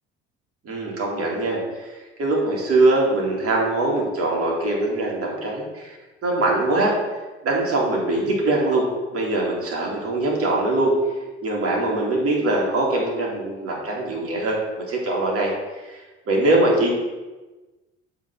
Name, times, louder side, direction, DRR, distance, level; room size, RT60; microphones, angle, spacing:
voice 1, 0.6-6.0 6.2-6.9 7.4-8.9 9.1-10.9 11.4-15.5 15.8-16.0 16.3-16.9, right 2 dB, 50° right, -2 dB, 2.4 m, -22 dB
7.1 x 3.6 x 5.5 m, 1.2 s
supercardioid pair, 65°, 29 cm